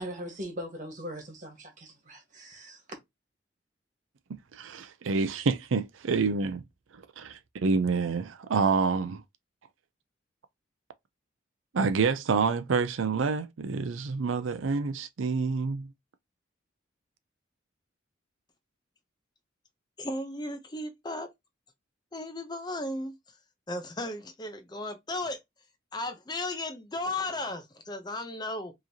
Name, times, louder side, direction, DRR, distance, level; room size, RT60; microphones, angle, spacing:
voice 1, 0.0-2.8, equal, 40° right, 1.4 m, -40 dB
voice 2, 4.3-6.6 7.2-9.2 11.7-15.9, right 4 dB, 90° right, 0.5 m, -28 dB
voice 3, 20.0-21.3 22.1-23.4 23.7-25.4 25.9-28.7, left 2 dB, 20° left, 0.6 m, -35 dB
4.7 x 3.1 x 2.8 m
head